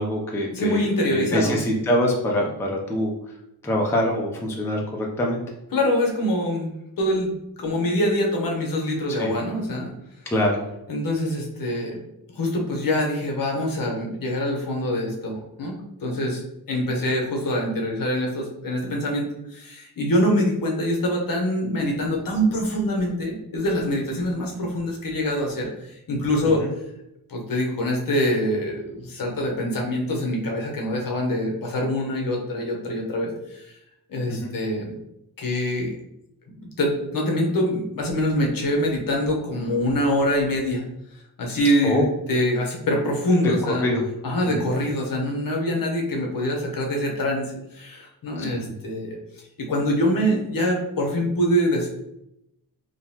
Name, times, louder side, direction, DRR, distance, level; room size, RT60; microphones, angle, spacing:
voice 1, 0.0-3.1 3.6-5.4 9.1-9.3 10.3-10.6 26.4-26.7 34.3-34.5 41.8-42.1 43.4-44.0 44.5-44.6, left 1 dB, 5° left, -1 dB, 0.4 m, -24 dB
voice 2, 0.5-1.6 5.7-6.7 7.0-9.9 10.9-12.0 12.3-16.4 16.7-26.6 27.3-33.7 34.1-35.0 35.4-35.9 36.5-40.8 41.4-43.9 44.2-49.2 49.6-51.9, equal, 55° left, 0 dB, 0.9 m, -24 dB
3.8 x 2.8 x 2.8 m, 0.84 s
wide cardioid pair, 155°, 39 cm